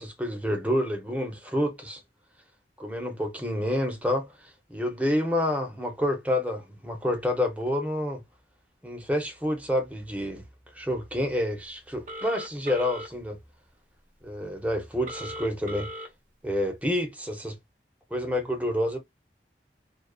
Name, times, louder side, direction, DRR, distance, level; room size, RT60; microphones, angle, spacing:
voice 1, 0.0-2.0 2.8-4.3 4.7-8.2 8.8-10.4 10.7-13.4 14.2-15.9 16.4-17.6 18.1-19.0, left 1 dB, 10° right, 0.6 m, -28 dB
Telephone, 12.1-13.1 15.1-16.1, equal, 45° right, 0.6 m, -38 dB
2.4 x 2.3 x 2.3 m
head